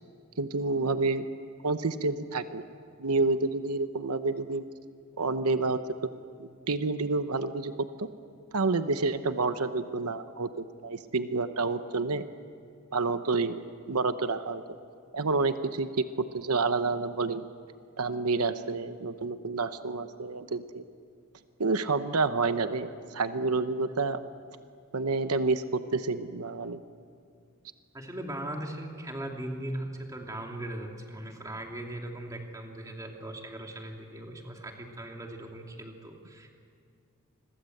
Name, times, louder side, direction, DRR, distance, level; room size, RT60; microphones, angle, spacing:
voice 1, 0.4-1.3 1.6-2.7 3.0-4.6 5.2-5.8 6.4-8.1 8.5-12.3 12.9-13.6 13.9-14.6 15.1-17.4 18.0-20.8 21.6-24.2 24.9-26.8, right 3 dB, 85° right, 10 dB, 0.9 m, -29 dB
voice 2, 27.9-36.7, right 1 dB, 15° right, 1 dB, 2.6 m, -39 dB
28.0 x 22.0 x 7.9 m, 2.3 s
head